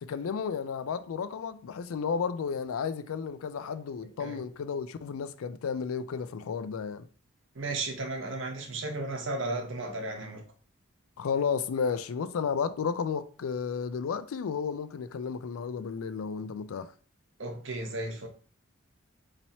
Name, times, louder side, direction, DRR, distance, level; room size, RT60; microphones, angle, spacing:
voice 1, 0.0-7.1 11.2-16.9, left 6 dB, 80° left, 0.4 m, -32 dB
voice 2, 7.6-10.4 17.4-18.3, right 2 dB, 60° right, 0.9 m, -34 dB
3.0 x 2.8 x 4.1 m
head